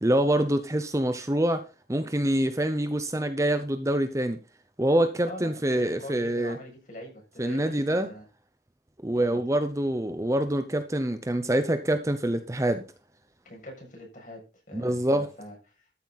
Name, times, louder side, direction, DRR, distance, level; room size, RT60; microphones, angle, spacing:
voice 1, 0.0-1.6 1.9-4.4 4.8-6.6 7.4-8.1 9.0-12.8 14.7-15.3, right 1 dB, 15° right, 0.8 m, -25 dB
voice 2, 5.3-8.2 9.1-9.4 13.4-14.4 14.7-15.6, equal, 45° left, 7.1 m, -43 dB
13.0 x 8.0 x 4.1 m
head